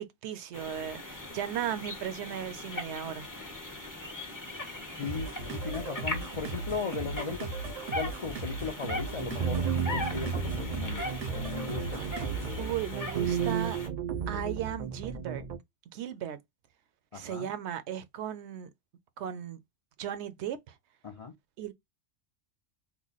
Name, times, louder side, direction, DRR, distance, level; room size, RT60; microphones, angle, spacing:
voice 1, 0.0-3.3 12.6-13.8 14.3-15.4 15.9-16.4 17.1-18.7 19.2-19.6 20.0-20.8 21.6-21.7, right 10 dB, 75° right, 0.8 m, -36 dB
sound 1, 0.5-13.9, left 2 dB, 20° left, 0.6 m, -40 dB
voice 2, 5.0-7.5 7.9-11.1 11.3-12.0 17.1-17.5 21.0-21.3, left 5 dB, 60° left, 0.3 m, -37 dB
sound 2, 5.0-12.6, right 3 dB, 90° right, 1.2 m, -38 dB
sound 3, 9.1-15.6, right 7 dB, 50° right, 0.5 m, -33 dB
3.0 x 2.1 x 3.9 m
omnidirectional pair, 1.2 m